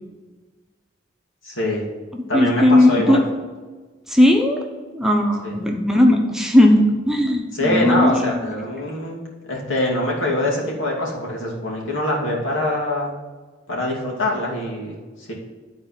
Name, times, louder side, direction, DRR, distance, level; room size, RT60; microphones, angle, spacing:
voice 1, 1.4-1.8 2.3-3.2 5.4-5.5 7.5-13.1 13.7-15.3, left 1 dB, 90° left, -3 dB, 2.6 m, -24 dB
voice 2, 2.1-3.2 4.1-4.6 4.9-8.5, left 1 dB, 5° right, 0 dB, 0.8 m, -17 dB
12.5 x 4.3 x 5.8 m, 1.4 s
head